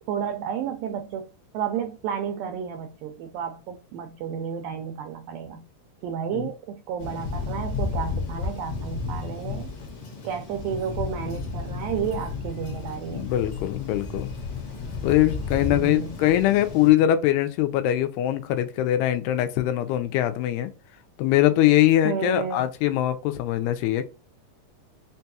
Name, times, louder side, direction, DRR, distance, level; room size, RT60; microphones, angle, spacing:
voice 1, 0.1-1.3 1.5-5.7 6.0-9.7 10.2-13.3 15.6-16.2 22.0-22.7, right 7 dB, 90° right, 2.0 m, -31 dB
Thunder, 7.0-16.9, left 4 dB, 60° left, 1.4 m, -33 dB
voice 2, 13.1-14.3 15.0-20.7 21.2-24.1, left 13 dB, 85° left, 2.5 m, -22 dB
5.9 x 2.3 x 2.8 m
omnidirectional pair, 4.5 m